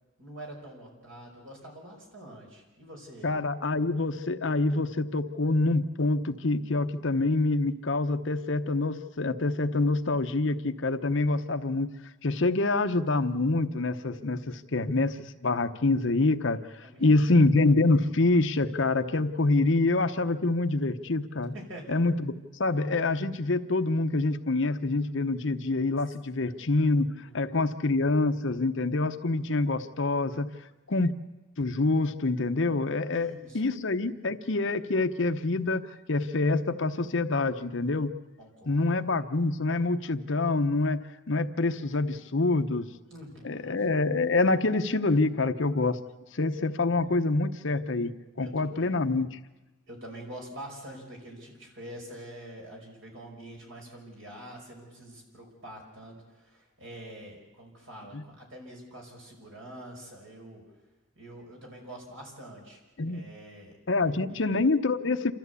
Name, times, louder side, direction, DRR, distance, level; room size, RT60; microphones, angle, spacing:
voice 1, 0.2-3.3 16.8-17.2 21.5-22.0 26.3-26.7 27.2-27.7 33.1-33.6 38.4-39.0 43.1-43.8 48.4-48.8 49.9-60.6 61.2-62.8 63.1-64.4, right 1 dB, 65° right, 0 dB, 5.5 m, -46 dB
voice 2, 3.2-11.9 12.2-16.6 17.0-21.5 21.9-30.5 30.9-31.1 31.6-35.8 36.1-38.1 38.7-41.0 41.3-42.9 43.4-46.0 46.3-48.1 48.4-49.4 58.1-58.2 63.0-63.2 63.9-65.3, left 2 dB, 60° left, 9 dB, 0.9 m, -26 dB
28.0 x 13.5 x 8.3 m, 1.1 s
head